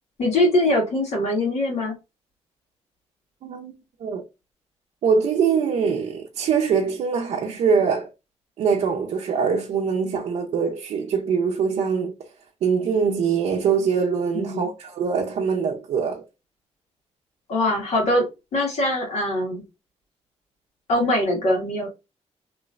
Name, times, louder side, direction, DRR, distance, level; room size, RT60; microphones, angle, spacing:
voice 1, 0.2-1.9 14.4-14.7 17.5-18.3 18.5-19.6 20.9-21.9, left 1 dB, 70° left, 1.8 m, -22 dB
voice 2, 3.4-4.2 5.0-8.1 8.6-12.1 12.6-16.2, right 6 dB, 70° right, 0.6 m, -23 dB
3.1 x 3.0 x 2.4 m
wide cardioid pair, 175°, 12 cm